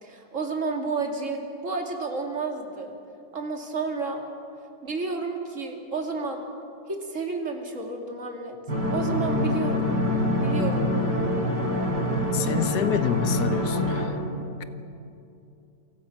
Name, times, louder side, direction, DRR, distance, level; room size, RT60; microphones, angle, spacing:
voice 1, 0.0-2.9 3.3-4.2 4.8-6.4 6.9-8.6 8.9-9.9 10.4-10.9, right 4 dB, 45° right, 2 dB, 2.9 m, -31 dB
sound 1, 8.7-14.1, left 1 dB, 85° right, 4.7 m, -25 dB
voice 2, 12.3-14.2, left 9 dB, 70° left, 12 dB, 1.5 m, -27 dB
28.5 x 24.0 x 6.0 m, 2.7 s
omnidirectional pair, 1.8 m